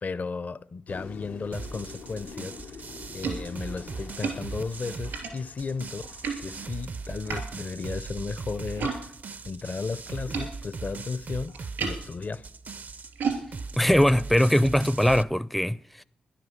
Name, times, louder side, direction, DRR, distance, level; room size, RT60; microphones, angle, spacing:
voice 1, 0.0-2.6 3.1-6.1 6.4-9.0 9.4-12.4, left 4 dB, 50° left, 0.6 m, -34 dB
sound 1, 0.9-9.0, left 5 dB, 90° left, 0.7 m, -47 dB
sound 2, 1.5-15.2, right 4 dB, 55° right, 0.5 m, -39 dB
sound 3, 2.6-9.0 9.3-15.2, right 5 dB, 85° right, 3.0 m, -37 dB
voice 2, 13.7-16.0, equal, ahead, 0.4 m, -21 dB
12.5 x 10.5 x 6.4 m
supercardioid pair, 50°, 3 cm